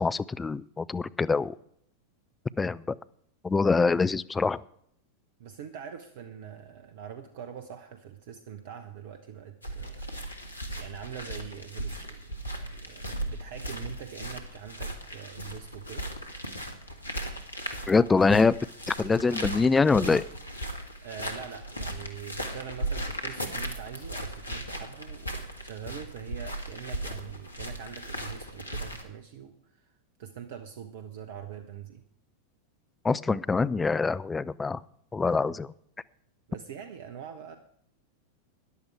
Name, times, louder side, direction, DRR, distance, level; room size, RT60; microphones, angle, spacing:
voice 1, 0.0-1.6 2.6-3.0 3.4-4.6 17.9-18.6 18.9-20.2 33.0-34.8 35.1-35.7, left 4 dB, 15° left, 17 dB, 0.4 m, -24 dB
voice 2, 5.4-16.1 21.0-32.0 35.3-35.6 36.5-37.6, right 8 dB, 55° right, 9 dB, 1.0 m, -44 dB
sound 1, 9.6-29.0, right 1 dB, 80° left, 1.7 m, -37 dB
14.0 x 10.5 x 4.7 m, 0.68 s
figure-of-eight pair, 90°, 0 cm